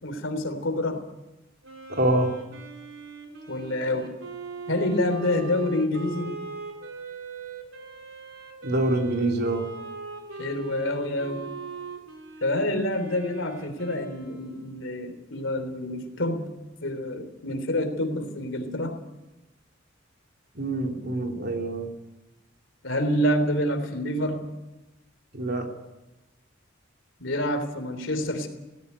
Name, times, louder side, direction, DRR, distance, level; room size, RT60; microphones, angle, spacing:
voice 1, 0.0-1.1 3.5-4.1 4.7-6.4 10.4-11.5 12.4-19.0 22.8-24.5 27.2-28.5, left 1 dB, 70° left, 7 dB, 3.5 m, -27 dB
Wind instrument woodwind instrument, 1.6-15.0, right 3 dB, 90° right, 4.1 m, -40 dB
voice 2, 1.9-2.3 8.6-9.7 20.5-21.9 25.3-25.7, right 1 dB, 55° right, 3 dB, 3.1 m, -25 dB
18.0 x 16.5 x 9.6 m, 1.0 s
head